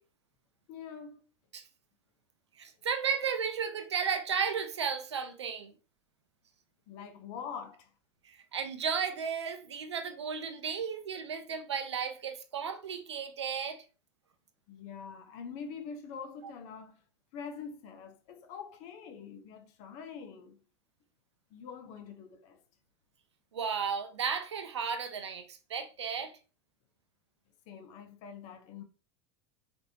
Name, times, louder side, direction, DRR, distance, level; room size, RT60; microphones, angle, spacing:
voice 1, 0.7-1.2 6.9-7.9 14.7-17.0 17.3-20.6 21.5-22.6 27.7-28.8, left 6 dB, 55° left, 0.7 m, -44 dB
voice 2, 2.6-5.7 8.2-13.8 23.5-26.4, right 6 dB, 90° right, 0.4 m, -34 dB
3.1 x 2.6 x 2.7 m
hypercardioid pair, 85°, 14 cm